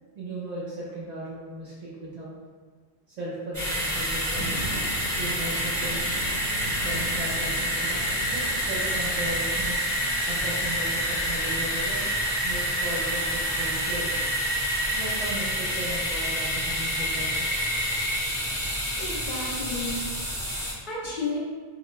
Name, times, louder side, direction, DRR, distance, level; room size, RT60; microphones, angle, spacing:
voice 1, 0.1-2.3 3.1-6.1 6.8-9.8 10.3-12.2 12.4-14.1 14.9-17.6, right 1 dB, 50° right, -7 dB, 0.6 m, -36 dB
sound 1, 3.5-20.7, equal, 15° right, 1.0 m, -28 dB
sound 2, 4.3-9.5, right 1 dB, 75° left, 1.2 m, -39 dB
voice 2, 19.0-20.0 20.3-21.4, left 3 dB, 60° left, -6 dB, 0.6 m, -33 dB
2.2 x 2.2 x 3.0 m, 1.5 s
omnidirectional pair, 1.1 m